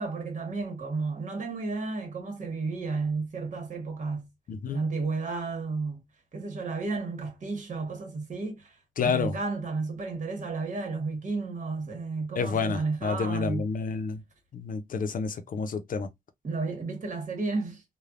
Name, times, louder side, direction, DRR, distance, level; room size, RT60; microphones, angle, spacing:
voice 1, 0.0-4.3 4.7-6.0 6.3-13.7 16.4-17.8, right 3 dB, 55° right, 1.3 m, -32 dB
voice 2, 4.5-4.8 9.0-9.3 12.4-14.2 14.5-16.1, left 5 dB, 65° left, 0.6 m, -29 dB
3.2 x 2.2 x 2.4 m
cardioid pair, 85°, 15 cm